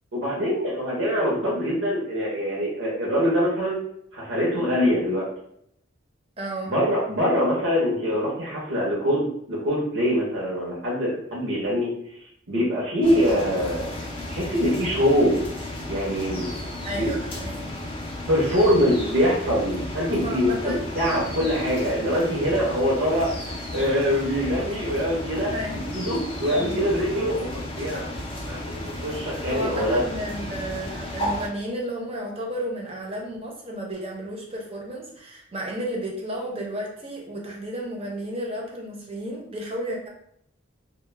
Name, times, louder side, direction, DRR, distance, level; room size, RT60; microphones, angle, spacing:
voice 1, 0.1-3.8 4.1-5.3 6.7-11.9 12.5-13.9 14.3-15.4 15.9-16.5 17.0-17.1 18.3-30.0, equal, 75° right, -5 dB, 0.6 m, -24 dB
voice 2, 6.4-6.7 16.8-17.7 20.0-20.8 25.5-25.8 26.5-26.8 29.5-40.1, right 1 dB, 30° right, -1 dB, 0.5 m, -32 dB
sound 1, 13.0-31.5, left 1 dB, 25° left, 0.4 m, -34 dB
2.1 x 2.0 x 3.1 m, 0.71 s
head